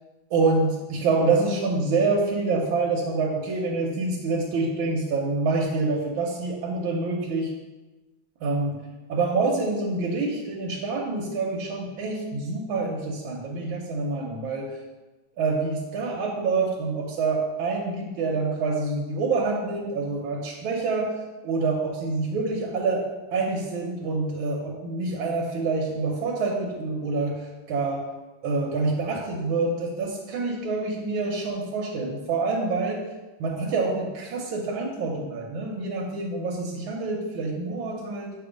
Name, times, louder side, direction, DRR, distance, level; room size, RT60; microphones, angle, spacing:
voice 1, 0.3-7.5 8.4-8.8 9.1-14.8 15.4-21.1 21.4-27.4 27.7-28.1 28.4-33.0 33.4-38.3, right 3 dB, 85° right, -2 dB, 1.6 m, -26 dB
6.9 x 2.8 x 5.0 m, 1.2 s
omnidirectional pair, 2.2 m